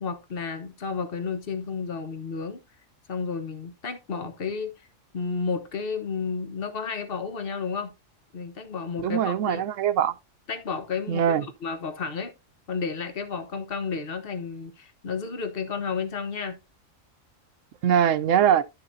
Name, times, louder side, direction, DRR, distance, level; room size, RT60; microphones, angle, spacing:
voice 1, 0.0-2.6 3.1-4.7 5.1-7.9 8.3-9.6 10.5-12.3 12.7-16.6, left 5 dB, 50° left, 1.2 m, -32 dB
voice 2, 9.0-10.1 11.1-11.4 17.8-18.6, right 9 dB, 75° right, 1.0 m, -22 dB
11.0 x 6.8 x 2.6 m
omnidirectional pair, 1.3 m